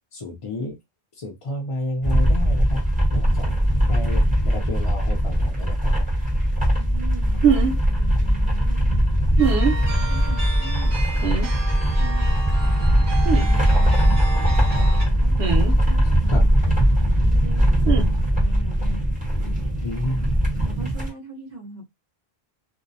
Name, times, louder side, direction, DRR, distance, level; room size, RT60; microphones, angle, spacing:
voice 1, 0.1-0.7 1.2-2.8 3.1-3.5 3.9-5.9 16.3-16.4 19.8-20.4, left 2 dB, 50° left, 0.4 m, -31 dB
sound 1, 2.0-21.1, equal, 10° right, 0.9 m, -20 dB
voice 2, 6.7-9.0 9.4-11.0 11.4-15.3 15.8-19.0 19.4-19.7 20.1-20.3 20.6-21.8, right 2 dB, 50° right, 0.9 m, -40 dB
sound 2, 7.4-7.7 9.4-9.8 11.2-11.5 13.3-13.5 15.4-15.7 17.9-18.1, right 7 dB, 85° right, 0.9 m, -21 dB
sound 3, 9.4-15.0, right 1 dB, 70° right, 1.2 m, -33 dB
2.6 x 2.0 x 2.5 m
omnidirectional pair, 1.1 m